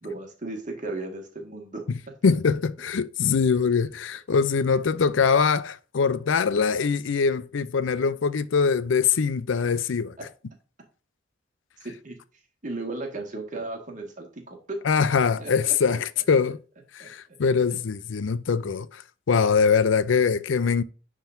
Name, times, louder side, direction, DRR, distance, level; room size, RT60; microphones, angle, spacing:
voice 1, 0.0-1.8 10.2-10.3 11.8-12.2 12.6-14.8 15.4-15.5 17.0-17.1, right 2 dB, 40° right, 1.8 m, -35 dB
voice 2, 2.2-10.1 14.8-16.6 16.9-19.0 19.3-20.8, left 5 dB, 75° left, 0.5 m, -23 dB
10.0 x 3.8 x 2.6 m
head